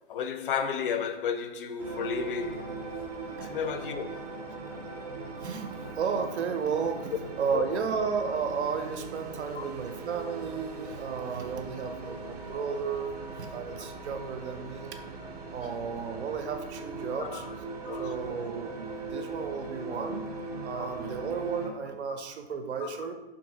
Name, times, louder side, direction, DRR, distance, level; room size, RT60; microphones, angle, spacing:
voice 1, 0.1-2.7 3.4-4.2 7.5-7.7 9.6-9.7 17.2-17.4 17.9-18.2 20.8-21.0 22.8-23.1, left 7 dB, 55° left, 0.4 m, -33 dB
sound 1, 1.8-21.7, right 3 dB, 35° right, 0.5 m, -40 dB
voice 2, 5.4-15.0 15.5-17.5 17.9-20.3 20.6-23.1, right 6 dB, 85° right, 0.6 m, -33 dB
2.7 x 2.5 x 3.8 m
hypercardioid pair, 150°, 33 cm